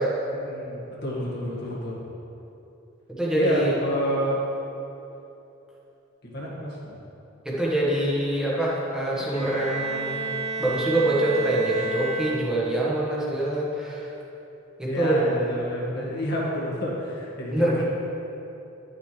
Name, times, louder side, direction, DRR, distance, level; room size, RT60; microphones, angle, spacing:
voice 1, 0.3-2.0 3.3-4.4 6.2-7.0 14.9-17.8, equal, 55° left, -5 dB, 1.8 m, -29 dB
voice 2, 3.2-3.7 7.4-10.2 10.6-14.1 14.8-15.2 15.9-16.1 17.5-17.8, right 1 dB, 5° right, -6 dB, 1.5 m, -25 dB
Bowed string instrument, 9.1-12.8, right 3 dB, 75° left, 2.1 m, -32 dB
11.0 x 6.7 x 3.3 m, 3.0 s
head